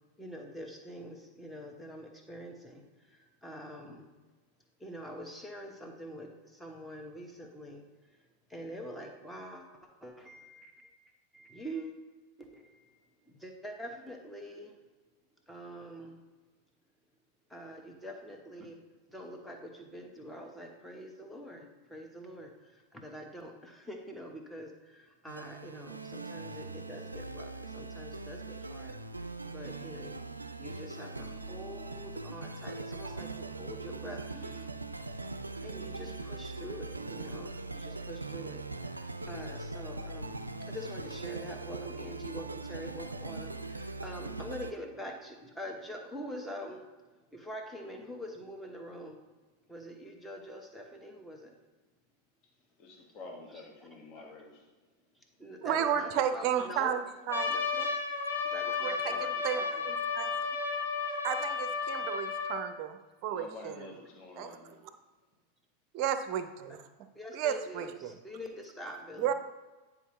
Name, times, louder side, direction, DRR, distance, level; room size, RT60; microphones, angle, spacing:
voice 1, 0.2-4.1 4.8-10.9 11.3-12.0 12.4-14.8 15.5-16.2 17.5-34.7 35.4-49.2 49.7-51.5 53.5-53.9 54.1-54.2 55.1-56.9 57.5-57.6 58.4-59.9 62.5-62.6 67.1-69.3, equal, 5° left, 2 dB, 1.2 m, -45 dB
sound 1, 25.3-44.7, right 3 dB, 80° right, 0.4 m, -41 dB
voice 2, 52.8-54.7 63.3-64.8, left 3 dB, 35° left, 0 dB, 1.4 m, -48 dB
voice 3, 55.6-57.9 58.8-59.2 59.4-60.5 61.2-63.0 63.2-63.7 64.4-64.6 65.9-66.5 67.3-67.8 69.2-69.3, right 9 dB, 40° right, 9 dB, 0.6 m, -32 dB
Trumpet, 57.3-62.6, left 5 dB, 75° left, 1.1 m, -33 dB
9.8 x 4.8 x 3.2 m, 1.3 s
figure-of-eight pair, 90°, 0 cm